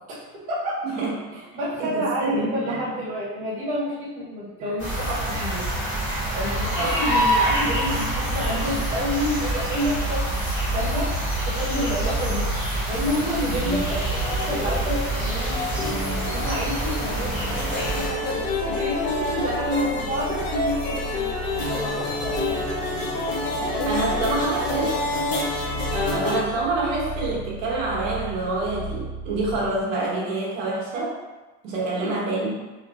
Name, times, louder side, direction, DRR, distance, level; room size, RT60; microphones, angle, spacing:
voice 1, 0.1-0.9 1.3-5.7 6.3-10.2 10.7-11.2 11.5-12.5 12.9-15.6 16.3-21.3 21.7-22.6 23.6-25.0 31.9-32.2, equal, 20° right, -8 dB, 0.5 m, -29 dB
voice 2, 0.9-1.4 1.8-2.8 6.8-6.9 13.5-13.9 23.9-24.9 25.9-31.2 31.6-32.5, right 2 dB, 80° right, -4 dB, 1.1 m, -27 dB
sound 1, 4.8-18.1, right 1 dB, 15° left, 1.1 m, -26 dB
sound 2, 13.6-29.8, right 1 dB, 55° left, 0.9 m, -36 dB
sound 3, 14.1-26.4, left 2 dB, 35° left, 0.4 m, -28 dB
3.1 x 2.6 x 2.4 m, 1.2 s
cardioid pair, 180°, 38 cm